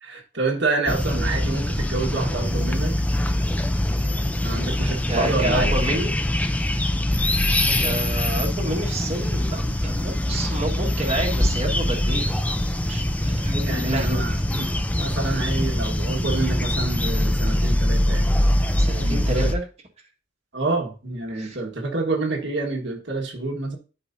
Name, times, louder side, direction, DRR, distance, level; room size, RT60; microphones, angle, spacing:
voice 1, 0.0-2.9 4.4-5.7 13.6-18.3 19.0-19.5 20.5-23.8, right 3 dB, 65° right, 0 dB, 1.5 m, -28 dB
sound 1, 0.9-19.6, left 1 dB, 10° left, 0.5 m, -23 dB
voice 2, 5.1-6.1 7.8-12.4 12.7-14.2 15.4-15.5 18.8-19.6 21.3-21.6, right 1 dB, 35° right, -1 dB, 1.5 m, -29 dB
11.5 x 4.9 x 2.6 m, 0.33 s
head